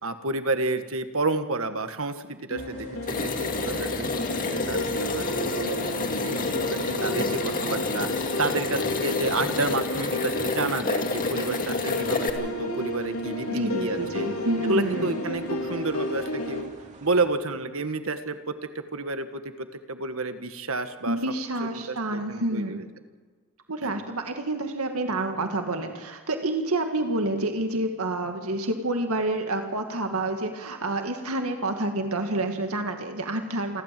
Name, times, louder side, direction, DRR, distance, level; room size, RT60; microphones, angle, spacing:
voice 1, 0.0-14.3 14.6-16.7 17.0-21.2 21.7-22.8 23.8-23.9, right 3 dB, 65° right, 9 dB, 1.6 m, -30 dB
sound 1, 2.5-16.6, left 1 dB, 85° left, 3.1 m, -32 dB
sound 2, 2.6-17.3, right 1 dB, 35° right, 2.8 m, -45 dB
sound 3, 3.1-12.3, left 3 dB, 40° left, 2.1 m, -29 dB
voice 2, 13.5-15.1 21.1-22.8 23.7-33.8, right 2 dB, 85° right, 5 dB, 2.0 m, -28 dB
28.0 x 12.5 x 7.7 m, 1.5 s
head